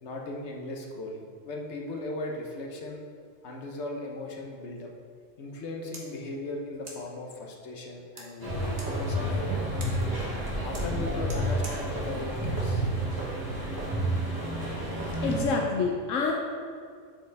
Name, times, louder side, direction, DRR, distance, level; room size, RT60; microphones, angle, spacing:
voice 1, 0.0-3.0 3.4-4.9 5.4-9.8 10.6-12.9, left 2 dB, 65° left, 0 dB, 1.3 m, -38 dB
sound 1, 5.9-13.5, right 2 dB, 60° right, 1.7 m, -51 dB
sound 2, 8.4-15.4, right 1 dB, 15° right, 1.6 m, -30 dB
voice 2, 15.2-16.4, left 4 dB, 85° left, 1 dB, 1.1 m, -27 dB
11.5 x 5.0 x 3.4 m, 2.2 s
omnidirectional pair, 1.3 m